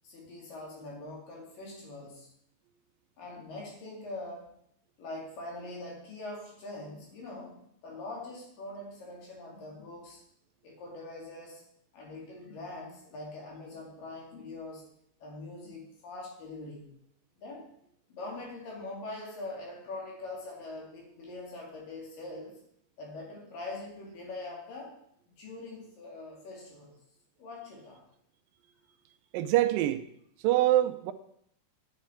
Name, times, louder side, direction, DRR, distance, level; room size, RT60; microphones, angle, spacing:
voice 1, 0.0-2.3 3.2-4.5 5.0-10.2 10.6-11.6 11.9-14.9 15.2-16.9 17.4-17.7 18.1-22.6 23.0-25.0 25.4-26.9 27.4-28.0, left 2 dB, 70° left, -2 dB, 4.2 m, -43 dB
voice 2, 29.3-30.0 30.4-31.1, right 14 dB, 80° right, 10 dB, 2.3 m, -24 dB
11.0 x 8.5 x 4.5 m, 0.70 s
omnidirectional pair, 4.2 m